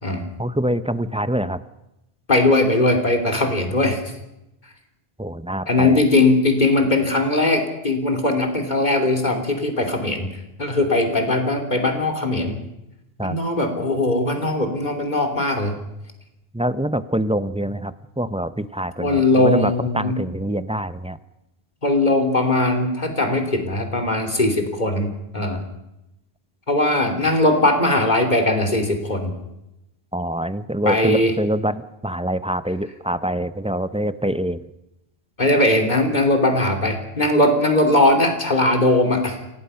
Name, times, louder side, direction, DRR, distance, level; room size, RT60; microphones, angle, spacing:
voice 1, 0.4-1.6 5.2-6.0 13.2-13.4 16.5-21.2 30.1-34.6, right 1 dB, 5° right, 13 dB, 0.6 m, -25 dB
voice 2, 2.3-4.0 5.7-10.3 10.6-12.6 13.2-15.8 19.0-20.2 21.8-25.6 26.7-29.3 30.8-31.3 35.4-39.4, left 2 dB, 45° left, 5 dB, 3.3 m, -19 dB
26.5 x 17.5 x 5.7 m, 0.90 s
omnidirectional pair, 1.0 m